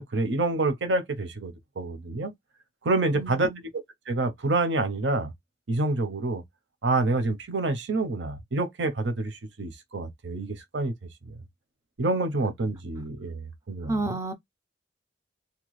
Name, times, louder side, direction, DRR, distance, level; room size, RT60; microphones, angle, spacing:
voice 1, 0.0-2.3 2.8-3.5 4.1-5.3 5.7-6.4 6.8-10.9 11.3-11.4 12.0-14.2, right 2 dB, 80° right, 0.6 m, -27 dB
voice 2, 3.1-3.6 13.9-14.3, right 2 dB, 15° right, 0.4 m, -30 dB
2.8 x 2.2 x 3.1 m
head